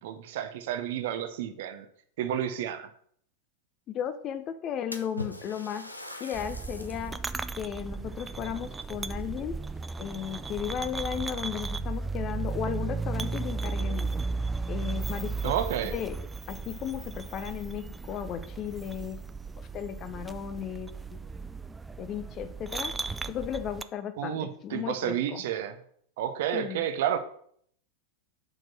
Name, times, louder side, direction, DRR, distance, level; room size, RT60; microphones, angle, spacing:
voice 1, 0.0-1.9 2.2-2.9 15.4-15.9 24.2-25.8 26.2-27.2, right 10 dB, 55° right, 9 dB, 0.7 m, -31 dB
voice 2, 3.9-5.9 6.2-7.2 7.6-9.6 10.0-14.1 14.7-15.5 15.8-16.2 16.5-19.2 19.7-21.2 22.0-22.9 23.3-25.4 26.5-26.8, left 9 dB, 30° left, 10 dB, 0.6 m, -35 dB
Splash splatter, 4.9-7.2 7.7-7.8 8.7-9.8 10.1-10.6 11.4-11.5 11.9-12.0 14.2-14.3 14.6-14.7 15.3-15.4 15.8-15.9 16.6-17.2, left 1 dB, 85° left, 0.7 m, -43 dB
sound 1, 6.3-23.8, right 4 dB, 10° right, 0.3 m, -35 dB
4.9 x 4.4 x 6.0 m, 0.63 s
figure-of-eight pair, 90°, 0 cm